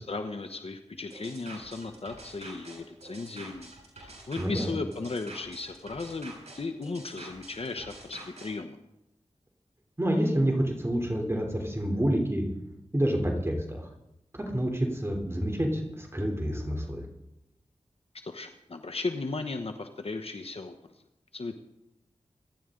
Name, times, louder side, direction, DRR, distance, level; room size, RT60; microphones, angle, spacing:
voice 1, 0.0-8.8 18.2-20.9 21.3-21.5, left 3 dB, 60° left, 7 dB, 1.0 m, -36 dB
sound 1, 1.1-8.5, right 2 dB, 75° right, 7.8 m, -47 dB
voice 2, 4.4-4.7 10.0-12.4 12.9-13.8 14.3-17.0, equal, 20° right, 1 dB, 3.3 m, -28 dB
26.5 x 11.0 x 3.8 m, 0.88 s
cardioid pair, 45°, 11 cm